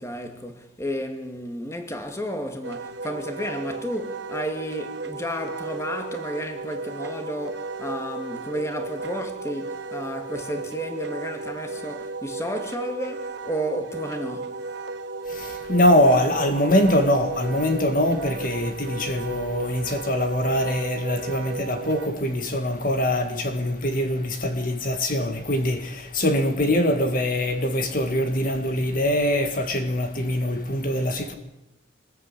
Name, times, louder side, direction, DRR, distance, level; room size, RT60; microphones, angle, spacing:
voice 1, 0.0-14.6, equal, 15° left, 2.3 m, -32 dB
Wind instrument woodwind instrument, 2.6-22.1, right 3 dB, 60° right, 1.2 m, -34 dB
voice 2, 15.3-31.3, left 1 dB, 45° left, 2.0 m, -23 dB
26.5 x 20.5 x 8.5 m
head